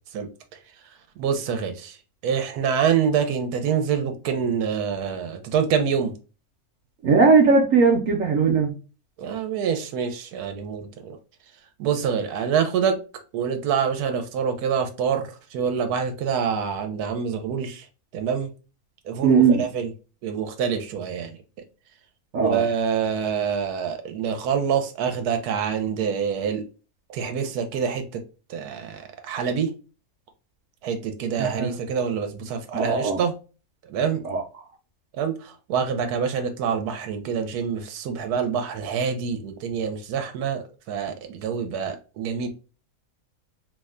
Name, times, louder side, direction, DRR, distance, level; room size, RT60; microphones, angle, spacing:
voice 1, 1.2-2.0 2.2-6.1 9.2-11.2 11.8-13.0 13.3-17.9 18.1-18.5 19.0-19.9 20.2-21.4 22.4-26.6 27.1-28.2 28.5-29.7 30.8-33.3 33.9-34.2 35.1-42.5, right 7 dB, 85° right, 1.1 m, -26 dB
voice 2, 7.0-8.7 19.2-19.6 22.3-22.6 31.4-31.7 32.7-33.2 34.3-34.4, right 4 dB, 65° right, 1.0 m, -18 dB
2.9 x 2.1 x 3.5 m
omnidirectional pair, 1.6 m